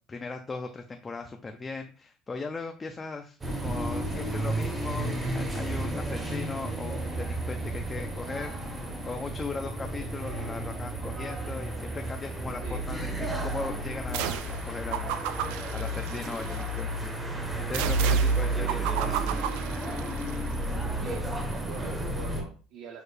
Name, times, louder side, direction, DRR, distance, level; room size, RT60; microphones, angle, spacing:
voice 1, 0.1-15.3 15.7-17.1 17.6-19.5, left 4 dB, 15° left, 4 dB, 0.3 m, -38 dB
sound 1, 3.4-22.4, right 2 dB, 15° right, 0.7 m, -31 dB
sound 2, 14.1-14.6 14.9-16.7 17.7-20.3, right 12 dB, 90° right, 0.3 m, -33 dB
voice 2, 21.0-23.0, right 6 dB, 55° right, 1 dB, 0.6 m, -44 dB
6.4 x 2.5 x 3.2 m, 0.35 s
cardioid pair, 175°, 0 cm